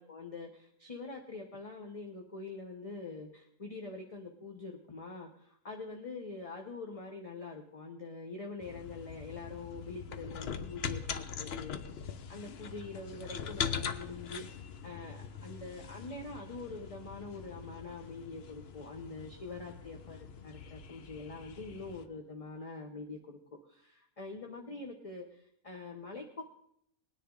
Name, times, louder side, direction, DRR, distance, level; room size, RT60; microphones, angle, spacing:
voice 1, 0.0-14.4 14.8-23.4 23.7-26.4, left 3 dB, 30° left, 2 dB, 0.9 m, -45 dB
sound 1, 8.6-22.1, left 7 dB, 55° left, 0.8 m, -42 dB
19.5 x 10.0 x 3.8 m, 0.70 s
omnidirectional pair, 1.5 m